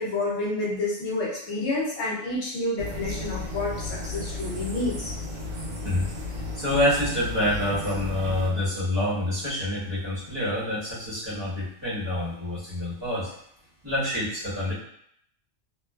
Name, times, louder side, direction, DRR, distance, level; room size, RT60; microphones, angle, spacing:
voice 1, 0.0-5.1, left 2 dB, 70° left, -6 dB, 0.9 m, -29 dB
sound 1, 2.8-8.5, left 2 dB, 75° right, 1.0 m, -34 dB
voice 2, 6.5-13.3 13.8-14.7, left 1 dB, 25° right, -13 dB, 1.0 m, -27 dB
2.5 x 2.3 x 2.2 m, 0.71 s
omnidirectional pair, 1.3 m